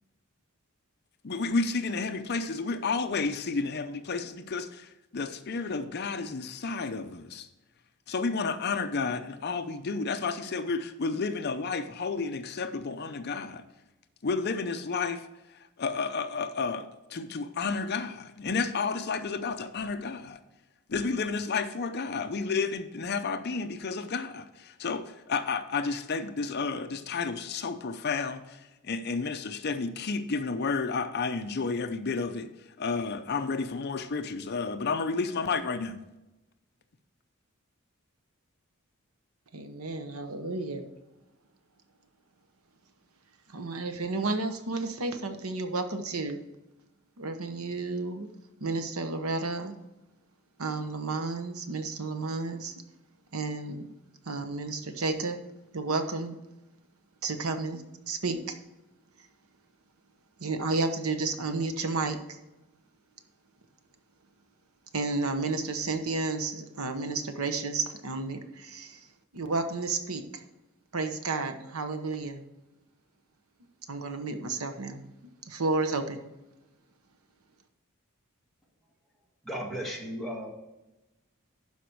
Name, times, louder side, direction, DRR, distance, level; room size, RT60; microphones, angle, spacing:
voice 1, 1.2-7.5 8.1-13.6 14.2-15.2 15.5-20.4 20.9-32.5 32.8-36.0, left 4 dB, 50° left, 9 dB, 0.6 m, -31 dB
voice 2, 39.5-40.9 43.5-46.4 47.2-48.3 48.6-49.7 50.6-52.7 53.3-53.9 54.2-55.4 55.7-56.4 57.2-58.6 60.4-62.4 64.9-69.1 69.3-70.4 70.9-72.4 73.9-75.0 75.5-76.2, right 3 dB, 85° right, 8 dB, 1.0 m, -32 dB
voice 3, 79.4-80.5, equal, ahead, -3 dB, 1.6 m, -35 dB
11.5 x 5.1 x 4.6 m, 0.99 s
head